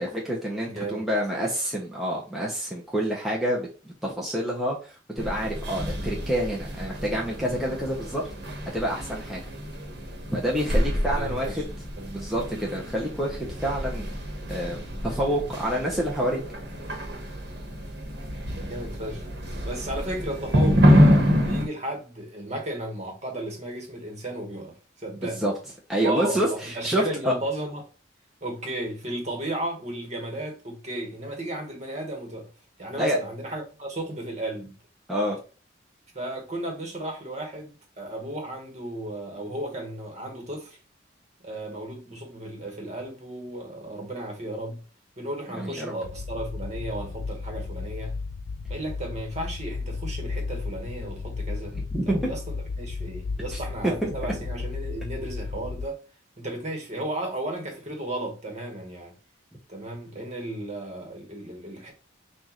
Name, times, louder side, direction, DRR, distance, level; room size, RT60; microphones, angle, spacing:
voice 1, 0.0-8.2 8.7-9.4 10.3-11.6 12.1-14.2 14.5-16.4 25.4-25.5 25.9-27.3 32.9-33.2 35.1-35.4 45.5-45.9 51.7-52.3 53.5-53.6 54.0-54.1, equal, ahead, 0.8 m, -28 dB
voice 2, 0.6-1.0 11.1-11.6 12.0-12.3 18.5-19.3 19.5-25.5 26.0-27.8 28.4-32.5 32.8-34.8 36.1-40.8 41.4-44.8 45.2-48.2 48.7-51.8 52.1-56.0 56.4-59.1 59.7-61.9, right 1 dB, 35° right, 1.3 m, -34 dB
sound 1, 5.2-21.7, equal, 60° right, 1.3 m, -26 dB
sound 2, 46.0-55.9, left 4 dB, 75° left, 0.4 m, -34 dB
6.1 x 2.6 x 3.0 m
head